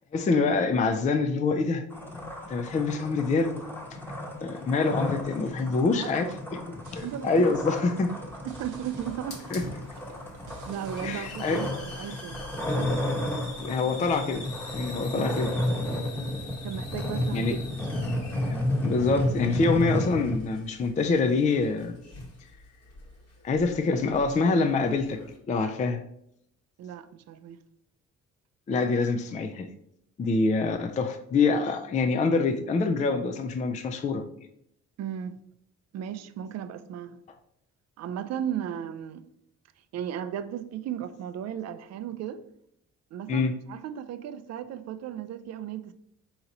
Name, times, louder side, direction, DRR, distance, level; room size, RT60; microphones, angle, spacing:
voice 1, 0.1-1.8 2.5-3.6 4.4-8.1 9.5-9.6 11.0-11.6 13.6-14.4 14.7-15.5 17.3-17.6 18.5-22.0 23.4-25.2 25.5-26.0 28.7-29.7 30.2-34.3 43.3-43.6, left 4 dB, 25° left, 0.3 m, -25 dB
sound 1, 1.9-20.4, left 1 dB, 5° left, 1.0 m, -32 dB
voice 2, 5.9-6.3 7.0-7.5 7.8-7.9 8.4-9.4 10.6-12.5 15.1-15.4 16.6-17.9 26.8-27.6 35.0-35.3 35.9-37.2 38.0-39.2 39.9-42.4 43.1-45.9, right 9 dB, 60° right, 0.4 m, -35 dB
sound 2, 6.8-11.9, right 4 dB, 85° right, 0.7 m, -50 dB
Hiss, 7.5-25.4, left 2 dB, 55° left, 1.3 m, -46 dB
3.9 x 2.9 x 4.0 m
cardioid pair, 90°, 30 cm